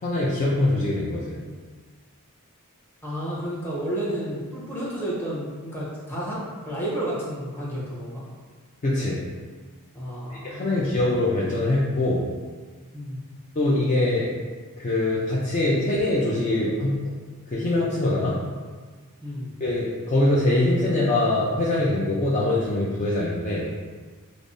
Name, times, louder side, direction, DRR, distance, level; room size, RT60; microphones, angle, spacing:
voice 1, 0.0-1.4 8.8-9.2 10.3-12.3 13.6-14.3 14.8-17.0 17.5-18.4 19.6-23.7, left 1 dB, 35° left, -6 dB, 0.4 m, -23 dB
voice 2, 3.0-8.2 9.9-10.9 12.9-13.2 19.2-19.5, right 1 dB, 10° left, -8 dB, 0.9 m, -31 dB
5.1 x 2.0 x 2.6 m, 1.4 s
head